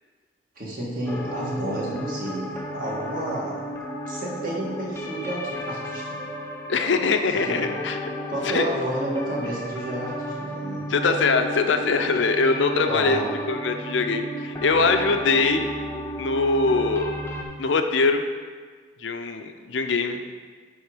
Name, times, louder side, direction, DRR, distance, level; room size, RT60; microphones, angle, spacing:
voice 1, 0.6-3.5 4.1-6.2 7.5-7.6 8.3-10.8 12.9-13.3, right 1 dB, 45° right, -4 dB, 2.0 m, -30 dB
sound 1, 1.1-17.4, equal, 15° left, 0.7 m, -33 dB
voice 2, 6.7-8.0 8.4-8.7 10.9-15.7 16.2-17.1 17.6-18.2 19.0-20.2, left 4 dB, 65° left, 7 dB, 0.5 m, -22 dB
10.5 x 3.8 x 5.0 m, 1.5 s
head